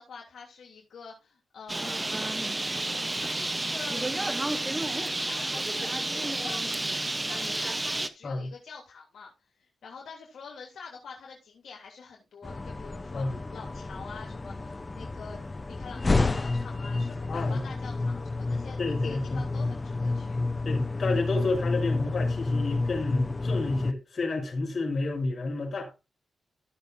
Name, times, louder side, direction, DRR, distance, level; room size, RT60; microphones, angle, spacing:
voice 1, 0.0-2.6 2.9-4.7 4.9-9.3 9.6-20.4, left 5 dB, 75° left, 3.2 m, -46 dB
Bird, 1.7-8.1, right 2 dB, 15° right, 0.9 m, -30 dB
sound 1, 12.4-23.9, left 3 dB, 20° left, 0.7 m, -30 dB
voice 2, 17.3-17.7 18.8-19.4 20.6-25.9, left 3 dB, 45° left, 5.1 m, -30 dB
15.5 x 6.9 x 2.7 m
wide cardioid pair, 130°, 0 cm